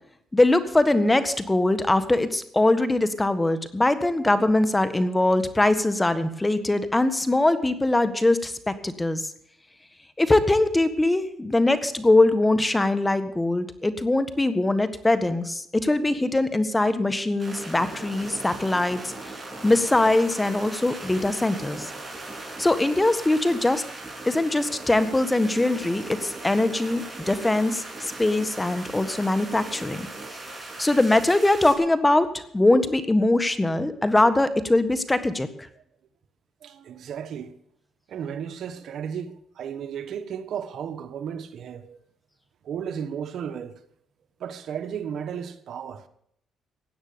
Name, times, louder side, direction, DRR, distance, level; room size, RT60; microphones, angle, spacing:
voice 1, 0.3-9.3 10.2-19.3 19.6-21.9 22.6-23.8 24.2-30.1 30.8-35.5, left 2 dB, 15° left, 1.6 m, -22 dB
sound 1, 17.4-31.7, right 2 dB, 20° right, 6.6 m, -39 dB
voice 2, 36.6-37.5 38.1-42.0 42.6-43.7 44.4-46.0, right 8 dB, 65° right, 1.3 m, -34 dB
17.0 x 9.6 x 6.9 m
cardioid pair, 90°, 0 cm